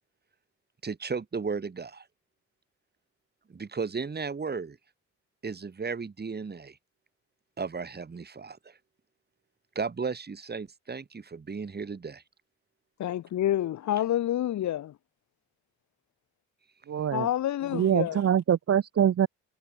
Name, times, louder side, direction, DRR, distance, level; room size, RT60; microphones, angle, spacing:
voice 1, 0.8-2.1 3.5-4.8 5.4-6.8 7.6-8.8 9.7-12.2, right 5 dB, 35° right, 6.8 m, -35 dB
voice 2, 13.0-14.9 17.1-18.2, left 12 dB, 70° left, 1.6 m, -28 dB
voice 3, 16.9-17.3 17.7-19.3, right 9 dB, 50° right, 1.4 m, -24 dB
cardioid pair, 90°, 30 cm